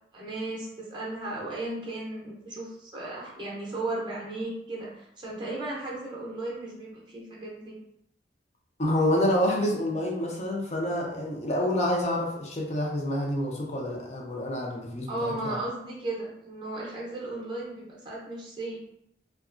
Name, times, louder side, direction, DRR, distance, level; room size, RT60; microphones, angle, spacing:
voice 1, 0.1-7.8 15.1-18.8, right 2 dB, 25° right, -4 dB, 0.6 m, -35 dB
voice 2, 8.8-15.6, left 1 dB, 40° left, -1 dB, 0.5 m, -28 dB
2.8 x 2.3 x 2.4 m, 0.75 s
head